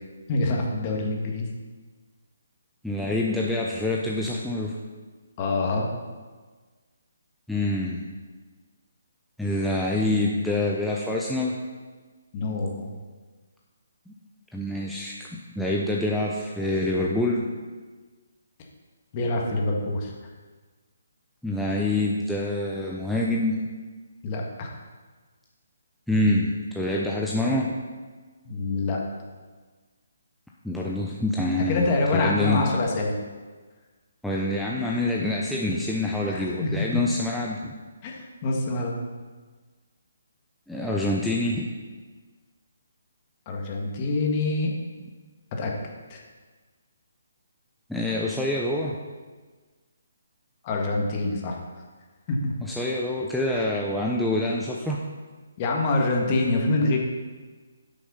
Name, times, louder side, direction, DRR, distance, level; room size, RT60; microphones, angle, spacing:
voice 1, 0.3-1.5 5.4-5.9 12.3-12.9 19.1-20.1 24.2-24.7 28.5-29.0 31.7-33.1 36.3-37.0 38.0-39.0 43.5-44.7 45.5-45.7 46.1-46.2 50.6-51.6 52.3-52.5 53.5-53.7 55.6-57.0, left 2 dB, 30° left, 0 dB, 1.8 m, -26 dB
voice 2, 2.8-4.8 7.5-8.1 9.4-11.5 14.1-14.2 14.5-17.4 21.4-23.6 26.1-27.7 30.6-32.6 34.2-37.7 40.7-41.7 47.9-49.0 52.6-55.0, left 1 dB, ahead, -4 dB, 0.7 m, -26 dB
9.9 x 6.2 x 5.6 m, 1.4 s
hypercardioid pair, 150°, 0 cm